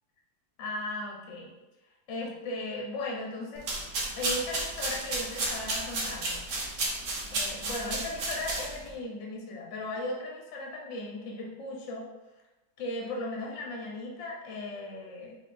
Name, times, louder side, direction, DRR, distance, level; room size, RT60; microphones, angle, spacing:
voice 1, 0.6-1.5 2.1-3.7 4.2-6.4 7.3-12.1 12.8-15.4, left 2 dB, 55° left, -2 dB, 1.0 m, -37 dB
sound 1, 3.6-8.9, right 2 dB, 60° right, 1.0 m, -33 dB
4.8 x 3.1 x 2.5 m, 1.1 s
omnidirectional pair, 1.7 m